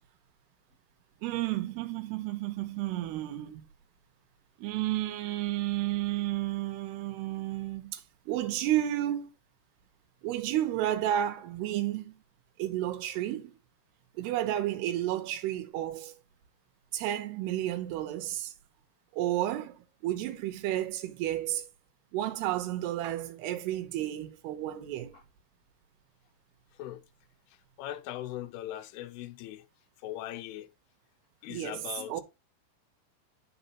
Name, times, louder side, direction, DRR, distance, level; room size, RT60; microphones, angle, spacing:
voice 1, 1.2-3.6 4.6-9.3 10.2-12.1 12.6-13.6 14.2-16.1 16.9-18.5 19.1-21.7 22.1-25.2 31.5-32.2, right 13 dB, 80° right, 2.9 m, -32 dB
voice 2, 27.8-29.6 30.0-30.7 31.4-32.2, left 13 dB, 80° left, 2.6 m, -39 dB
8.1 x 6.0 x 2.9 m
omnidirectional pair, 4.7 m